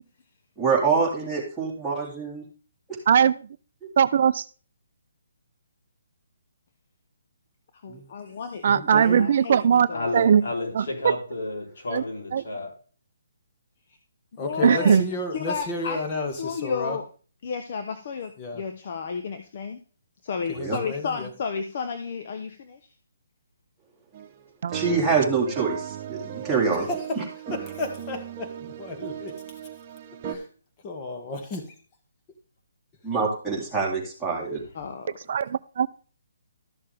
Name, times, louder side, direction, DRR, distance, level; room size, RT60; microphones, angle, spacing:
voice 1, 0.6-2.4 7.9-8.0 8.7-9.2 20.5-20.8 24.7-26.9 27.2-27.3 33.0-34.6, right 5 dB, 5° right, -6 dB, 3.0 m, -26 dB
voice 2, 3.1-3.5 4.0-4.4 8.6-9.9 10.1-10.4 10.8-10.9 11.9-12.0 12.3-12.4 14.6-15.0 24.6-24.8 35.3-35.9, right 8 dB, 50° right, 14 dB, 0.5 m, -19 dB
voice 3, 7.8-10.3 14.4-15.0 15.3-16.0 16.4-17.0 17.4-19.8 20.2-22.8 34.7-35.2, left 6 dB, 45° left, 7 dB, 1.0 m, -32 dB
voice 4, 9.9-12.8, left 2 dB, 65° left, 0 dB, 4.0 m, -31 dB
voice 5, 14.4-17.0 18.4-18.6 20.5-21.3 26.7-29.4 30.3-30.5 30.8-31.8, left 2 dB, 25° left, 3 dB, 2.1 m, -33 dB
sound 1, 24.1-24.3 24.7-30.3, right 10 dB, 30° right, 1.3 m, -37 dB
13.0 x 6.7 x 3.5 m, 0.38 s
hypercardioid pair, 155°, 0 cm